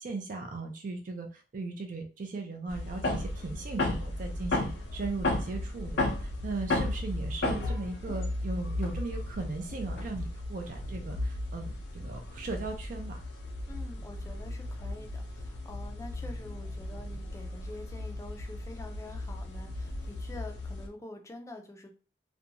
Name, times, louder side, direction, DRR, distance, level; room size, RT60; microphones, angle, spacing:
voice 1, 0.0-13.2, right 3 dB, 50° right, 3 dB, 0.4 m, -38 dB
sound 1, 2.7-20.9, left 2 dB, 90° left, 0.7 m, -35 dB
voice 2, 13.7-21.9, left 1 dB, 15° left, 3 dB, 0.4 m, -46 dB
2.5 x 2.2 x 2.8 m, 0.34 s
head